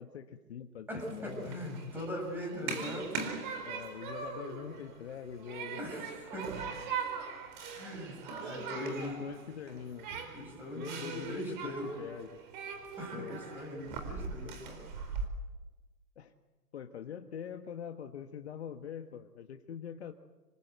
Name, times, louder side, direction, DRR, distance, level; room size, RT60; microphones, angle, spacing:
voice 1, 0.0-1.5 2.6-2.8 3.6-5.8 8.7-10.1 10.7-12.4 13.1-13.4 16.2-16.3 16.7-20.1, left 8 dB, 40° left, 7 dB, 1.5 m, -44 dB
voice 2, 0.9-3.3 5.8-6.6 7.7-9.2 10.3-11.9 13.0-14.8, equal, 5° right, 1 dB, 6.6 m, -40 dB
Human group actions, 0.9-15.2, right 5 dB, 30° right, 4.4 m, -41 dB
27.0 x 24.0 x 8.1 m, 1.2 s
hypercardioid pair, 145°, 48 cm